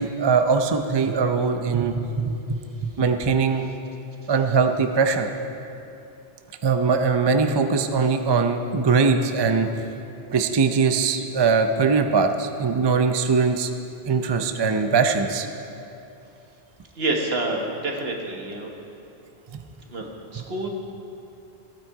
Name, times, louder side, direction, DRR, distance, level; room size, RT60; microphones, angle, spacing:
voice 1, 0.0-3.7 4.3-5.3 6.6-9.7 10.3-13.7 14.1-15.5 19.5-19.6, right 5 dB, 35° right, 6 dB, 0.4 m, -21 dB
voice 2, 17.0-18.7 19.9-20.7, right 2 dB, 65° right, 1 dB, 1.5 m, -28 dB
15.5 x 9.1 x 4.7 m, 2.8 s
omnidirectional pair, 1.1 m